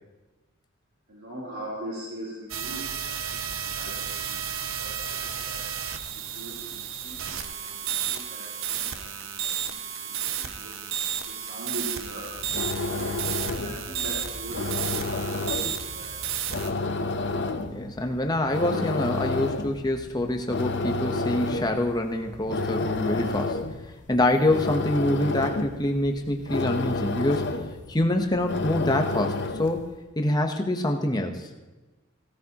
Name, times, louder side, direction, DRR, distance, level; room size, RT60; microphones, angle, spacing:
voice 1, 1.1-4.4 4.7-5.7 6.1-9.1 9.4-10.7 11.2-13.1 13.5-16.9, right 1 dB, 90° right, -8 dB, 3.2 m, -41 dB
sound 1, 2.5-16.7, right 8 dB, 70° right, 0.8 m, -32 dB
sound 2, 12.3-29.9, left 3 dB, 55° left, 0.7 m, -31 dB
voice 2, 17.7-23.6 24.1-27.5 27.9-29.9 30.2-31.5, left 1 dB, 20° left, 4 dB, 0.9 m, -25 dB
17.0 x 13.5 x 2.9 m, 1.2 s
head